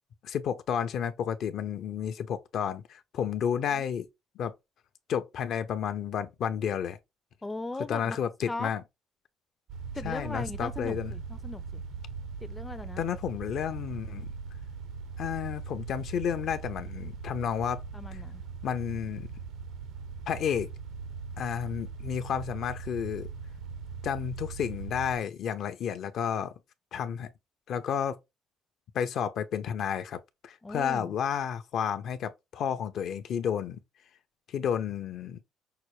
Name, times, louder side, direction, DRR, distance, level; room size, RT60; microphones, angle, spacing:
voice 1, 0.2-4.1 4.4-4.5 5.1-7.0 7.9-8.8 10.0-11.1 13.0-14.3 15.2-17.8 18.6-19.3 20.3-20.7 21.4-23.3 24.0-26.5 26.9-27.3 27.7-28.2 28.9-30.2 30.4-33.8 34.5-35.4, left 8 dB, 65° left, 0.6 m, -31 dB
voice 2, 7.4-8.2 8.5-8.7 9.9-11.8 12.4-13.0 17.9-18.4 30.6-31.1, left 2 dB, 15° left, 0.4 m, -38 dB
sound 1, 9.7-25.2, right 5 dB, 75° right, 0.6 m, -40 dB
5.7 x 2.1 x 3.1 m
cardioid pair, 100°, 0 cm